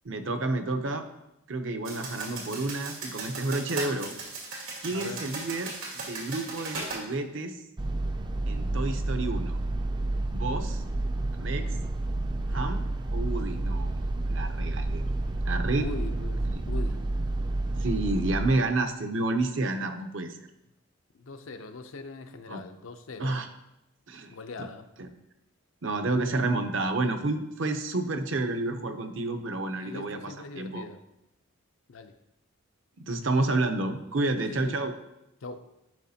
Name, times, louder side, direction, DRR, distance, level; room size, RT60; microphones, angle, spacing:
voice 1, 0.0-1.0 1.5-4.1 4.8-7.6 8.5-9.6 10.3-10.8 11.3-11.7 12.5-12.9 13.1-14.0 14.3-15.0 15.5-15.9 16.5-16.6 17.8-20.4 22.5-22.6 23.2-23.5 24.1-24.3 25.0-25.1 25.8-30.8 33.0-34.9, right 2 dB, 65° right, 6 dB, 0.7 m, -30 dB
sound 1, 1.8-7.0, right 3 dB, 85° right, 2.1 m, -37 dB
voice 2, 4.9-5.2 15.7-17.0 19.8-19.9 21.1-23.5 24.3-24.9 29.7-31.0 31.9-32.2 34.4-34.8 35.4-35.7, left 3 dB, 75° left, 8 dB, 0.6 m, -41 dB
sound 2, 7.8-18.5, right 2 dB, 20° right, 0.4 m, -30 dB
10.5 x 5.0 x 2.8 m, 0.87 s
head